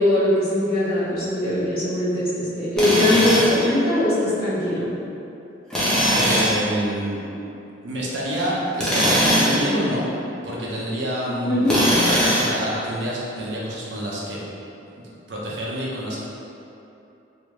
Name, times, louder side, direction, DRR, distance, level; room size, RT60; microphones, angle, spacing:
voice 1, 0.0-4.9 11.4-11.8, left 1 dB, 50° left, -12 dB, 1.3 m, -21 dB
Tools, 2.8-3.6 5.7-6.6 8.7-9.6 11.7-12.6, equal, 5° left, 0.6 m, -20 dB
voice 2, 3.1-3.4 6.1-7.2 7.8-10.1 10.4-14.4 15.3-16.2, equal, 70° right, -5 dB, 0.6 m, -27 dB
3.3 x 2.7 x 3.0 m, 2.8 s
head